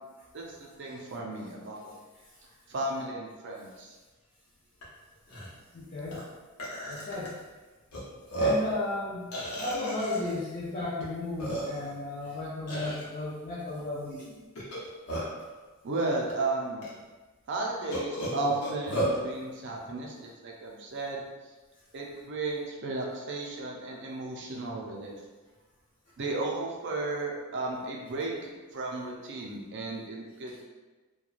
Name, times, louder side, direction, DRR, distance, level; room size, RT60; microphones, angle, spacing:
voice 1, 0.3-1.9 2.7-4.0 15.8-16.9 17.5-21.2 21.9-25.2 26.2-30.6, right 2 dB, 55° right, -1 dB, 0.5 m, -34 dB
Burping eructation, 4.8-4.9 5.3-5.5 6.1-6.2 6.6-7.3 7.9-8.0 8.3-8.7 9.3-10.3 11.0-11.1 11.4-12.0 12.7-13.0 14.6-15.5 16.3-16.4 16.8-16.9 17.9-19.2, right 1 dB, 85° left, 0.8 m, -32 dB
voice 2, 5.7-6.2 6.8-7.4 8.4-9.3 9.6-14.4, left 2 dB, 35° left, -8 dB, 0.5 m, -34 dB
2.9 x 2.2 x 2.4 m, 1.3 s
head